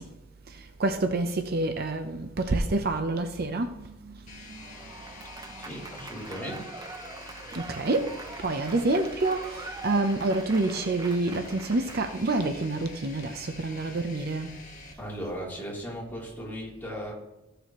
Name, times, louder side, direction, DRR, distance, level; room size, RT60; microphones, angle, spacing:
voice 1, 0.8-3.7 7.5-8.1 8.4-9.4 9.8-14.5, right 2 dB, 50° right, 0.7 m, -27 dB
sound 1, 4.3-14.9, left 4 dB, 40° left, 1.5 m, -47 dB
Applause / Crowd, 4.5-12.7, right 3 dB, 20° right, 0.5 m, -43 dB
voice 2, 5.6-6.6 15.0-17.1, equal, 10° left, 3.2 m, -37 dB
14.5 x 6.8 x 3.0 m
head